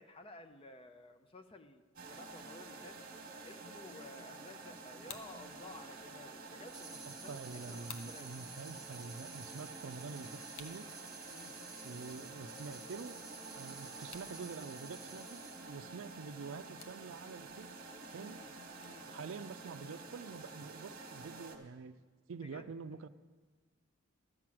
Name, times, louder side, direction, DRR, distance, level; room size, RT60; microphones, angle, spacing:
voice 1, 0.0-3.0 3.4-8.3 11.3-11.5 18.3-18.5 18.8-19.1 22.4-22.8, left 2 dB, 25° left, 8 dB, 0.5 m, -54 dB
sound 1, 2.0-21.6, right 3 dB, 45° right, 1.2 m, -50 dB
sound 2, 4.9-19.1, left 6 dB, 65° left, 0.8 m, -59 dB
sound 3, 6.7-15.8, right 3 dB, ahead, 1.0 m, -53 dB
voice 2, 7.0-10.9 11.8-13.3 13.6-15.4 15.7-17.7 18.1-18.4 19.1-22.0 22.3-23.1, right 4 dB, 65° right, 13 dB, 0.4 m, -47 dB
12.0 x 6.0 x 7.6 m, 1.4 s
head